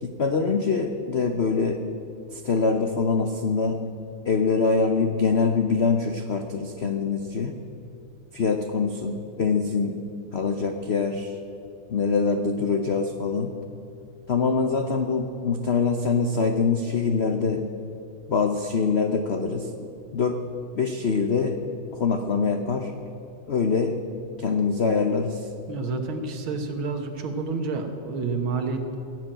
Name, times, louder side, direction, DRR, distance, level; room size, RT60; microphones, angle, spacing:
voice 1, 0.0-1.8 2.3-3.8 4.3-7.5 8.3-9.9 10.3-11.4 11.9-13.5 14.3-17.6 18.3-20.4 20.7-21.6 21.9-22.9 23.5-24.0 24.4-25.5, left 5 dB, 85° left, 5 dB, 0.5 m, -24 dB
voice 2, 25.7-29.0, right 4 dB, 80° right, 5 dB, 2.1 m, -29 dB
16.5 x 7.7 x 9.0 m, 2.7 s
omnidirectional pair, 2.3 m